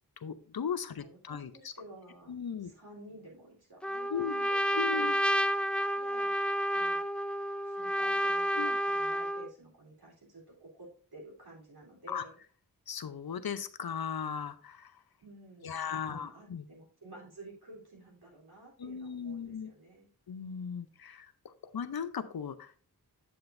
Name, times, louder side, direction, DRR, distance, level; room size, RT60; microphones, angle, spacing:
voice 1, 0.2-1.5 2.3-2.7 4.1-4.3 4.8-5.2 8.6-8.8 12.1-12.2 12.9-15.0 15.6-16.7 18.8-19.7 20.3-22.7, left 7 dB, 65° left, 11 dB, 0.7 m, -37 dB
voice 2, 0.9-2.3 2.6-5.1 5.9-6.3 6.7-7.0 7.7-12.3 15.2-20.1, right 2 dB, 75° right, -3 dB, 3.6 m, -52 dB
Trumpet, 3.8-9.5, equal, 5° left, 0.3 m, -30 dB
7.8 x 7.8 x 2.6 m, 0.42 s
cardioid pair, 45°, 39 cm